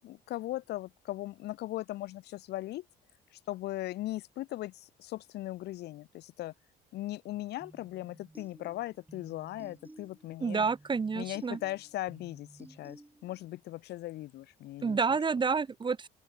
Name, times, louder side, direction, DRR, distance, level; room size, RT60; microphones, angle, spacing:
voice 1, 0.0-2.8 3.5-6.5 6.9-10.7 11.2-15.0, left 16 dB, 75° left, 7.2 m, -38 dB
sound 1, 7.6-13.6, right 2 dB, 10° right, 6.7 m, -55 dB
voice 2, 10.4-11.6 14.8-16.1, right 5 dB, 30° right, 2.6 m, -29 dB
open air
cardioid pair, 110°, 17 cm